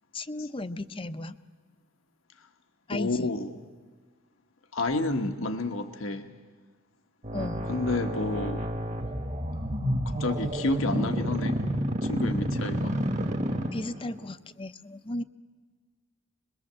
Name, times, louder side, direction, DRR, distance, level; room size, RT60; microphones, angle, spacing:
voice 1, 0.1-1.4 2.9-3.3 7.3-7.7 13.7-15.2, left 2 dB, 25° left, 0.7 m, -35 dB
voice 2, 2.9-3.6 4.7-6.3 7.6-8.7 10.0-11.7 12.0-13.0, left 2 dB, 75° left, 1.4 m, -30 dB
sound 1, 7.2-14.2, equal, 35° right, 1.3 m, -30 dB
26.0 x 22.0 x 7.5 m
head